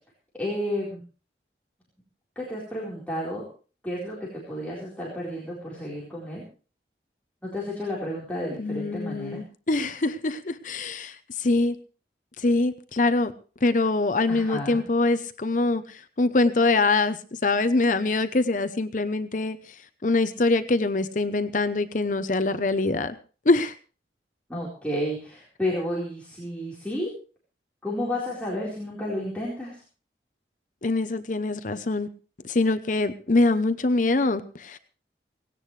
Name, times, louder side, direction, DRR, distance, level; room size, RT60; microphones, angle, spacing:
voice 1, 0.4-1.0 2.4-3.4 3.8-6.4 7.5-9.4 14.3-14.9 24.5-27.1 27.8-29.7, left 1 dB, 10° left, -6 dB, 4.3 m, -31 dB
voice 2, 8.6-11.8 12.4-13.3 13.6-19.6 20.0-23.2 23.5-23.7 30.8-32.1 32.4-34.8, left 2 dB, 45° left, 10 dB, 0.8 m, -24 dB
18.0 x 17.0 x 3.3 m, 0.37 s
head